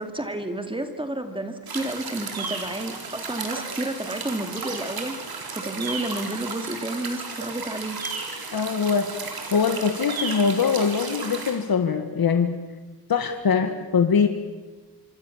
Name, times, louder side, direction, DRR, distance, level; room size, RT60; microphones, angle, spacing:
voice 1, 0.0-8.0, right 1 dB, 15° right, 6 dB, 2.2 m, -31 dB
sound 1, 1.7-11.6, right 4 dB, 75° right, 4.2 m, -34 dB
voice 2, 8.5-9.2 9.5-12.6 13.1-14.3, left 6 dB, 75° left, 6 dB, 1.7 m, -22 dB
26.5 x 25.5 x 7.2 m, 1.3 s
wide cardioid pair, 145°, 37 cm